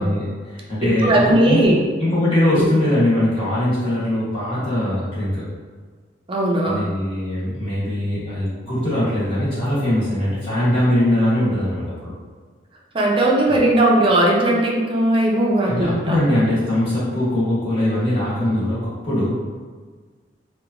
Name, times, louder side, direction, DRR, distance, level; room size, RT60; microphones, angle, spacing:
voice 1, 0.0-1.6 2.0-5.5 6.6-12.1 15.7-19.3, left 1 dB, 30° left, -10 dB, 0.9 m, -21 dB
voice 2, 0.8-1.8 2.5-2.7 6.3-6.8 12.9-16.2, right 1 dB, 30° right, -2 dB, 0.4 m, -18 dB
2.9 x 2.2 x 2.4 m, 1.5 s
head